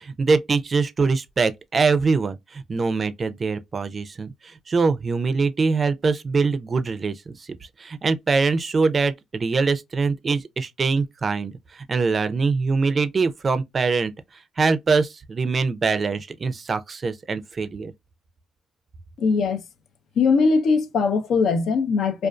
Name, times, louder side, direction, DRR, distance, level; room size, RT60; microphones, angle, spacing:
voice 1, 0.0-7.5 7.8-14.1 14.6-17.9, right 4 dB, 40° right, 0.4 m, -23 dB
voice 2, 19.2-19.6 20.2-22.3, left 4 dB, 70° left, 0.6 m, -20 dB
2.5 x 2.3 x 2.2 m
cardioid pair, 90°, 0 cm